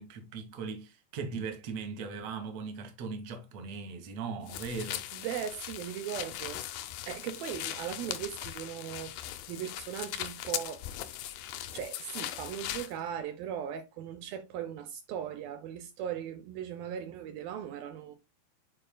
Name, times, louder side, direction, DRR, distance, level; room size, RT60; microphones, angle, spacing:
voice 1, 0.0-5.0, right 4 dB, 60° right, 1.8 m, -39 dB
sound 1, 4.5-12.9, left 13 dB, 85° left, 2.0 m, -39 dB
voice 2, 5.1-6.6 7.1-10.9 11.7-18.2, right 9 dB, 90° right, 2.0 m, -38 dB
11.5 x 4.4 x 2.2 m
omnidirectional pair, 5.1 m